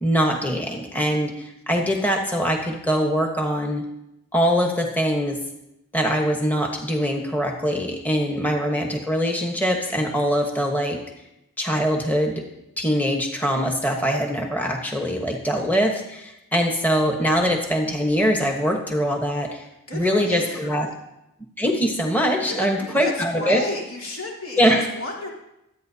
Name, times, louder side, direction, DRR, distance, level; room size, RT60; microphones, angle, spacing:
voice 1, 0.0-3.8 4.3-5.4 5.9-11.0 11.6-12.4 12.8-19.6 19.9-20.9 21.6-23.6 24.6-24.9, equal, 10° left, 1 dB, 1.1 m, -23 dB
voice 2, 19.9-21.0 22.5-25.3, left 1 dB, 85° left, -3 dB, 3.3 m, -32 dB
24.0 x 9.1 x 2.8 m, 0.88 s
head